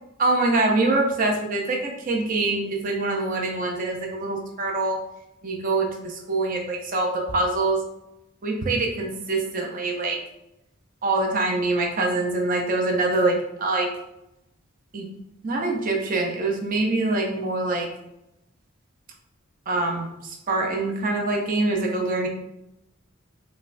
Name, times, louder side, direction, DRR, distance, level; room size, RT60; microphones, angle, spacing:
voice 1, 0.2-5.0 5.4-7.8 8.4-10.2 11.0-13.9 14.9-15.1 15.4-17.9 19.7-22.3, right 2 dB, 40° right, 1 dB, 0.6 m, -24 dB
5.2 x 2.2 x 2.5 m, 0.87 s
head